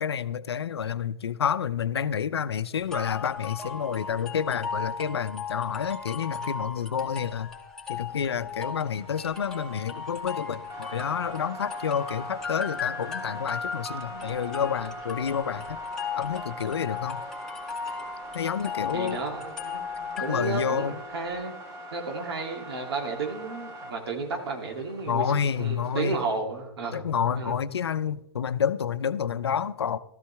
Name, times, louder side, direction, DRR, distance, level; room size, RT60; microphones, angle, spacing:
voice 1, 0.0-7.5 7.9-15.8 16.2-17.2 18.3-19.2 20.3-20.9 25.1-26.2 26.9-30.0, left 7 dB, 90° left, 0.6 m, -29 dB
sound 1, 2.9-20.8, left 5 dB, 5° left, 2.3 m, -37 dB
sound 2, 8.8-26.4, right 1 dB, 30° right, 2.5 m, -42 dB
voice 2, 18.9-21.5 21.9-25.3 25.6-27.0 27.3-27.6, right 4 dB, 80° right, 2.7 m, -32 dB
13.5 x 13.0 x 3.5 m
hypercardioid pair, 120°, 13 cm